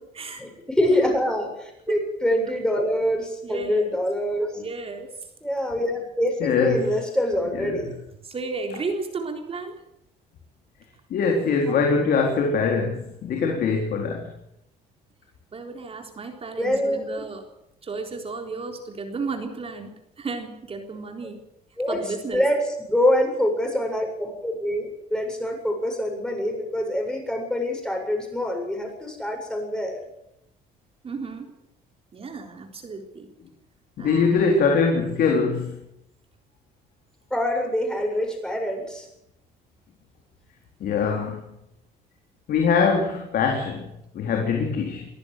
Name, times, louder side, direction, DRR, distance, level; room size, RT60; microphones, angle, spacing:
voice 1, 0.4-4.6 5.4-7.9 11.7-11.8 16.6-17.2 21.8-30.0 37.3-39.1, left 1 dB, 5° left, 2 dB, 7.6 m, -25 dB
voice 2, 3.4-4.0 4.6-5.1 8.2-9.8 15.5-17.4 17.8-21.4 21.9-22.4 31.0-31.5 32.1-33.3 34.0-34.6, right 4 dB, 35° right, 3 dB, 3.9 m, -34 dB
voice 3, 6.4-6.9 7.5-7.8 11.1-14.3 34.0-35.8 40.8-41.4 42.5-45.1, left 5 dB, 65° left, 1 dB, 4.1 m, -22 dB
23.5 x 14.5 x 8.2 m, 0.82 s
cardioid pair, 110°, 17 cm